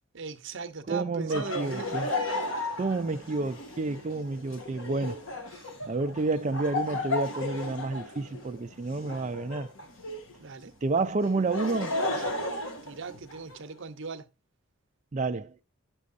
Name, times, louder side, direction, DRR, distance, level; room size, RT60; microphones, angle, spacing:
voice 1, 0.1-2.0 2.3-2.4 5.5-5.6 10.4-10.7 12.1-12.3 12.8-14.3, right 4 dB, 60° right, 0.8 m, -39 dB
voice 2, 0.9-2.1 2.8-5.2 5.9-9.7 10.8-12.0 15.1-15.5, right 3 dB, 35° right, 0.4 m, -30 dB
Laughter, 1.3-10.4 11.2-13.6, left 2 dB, 65° left, 1.4 m, -34 dB
9.4 x 6.3 x 2.5 m
head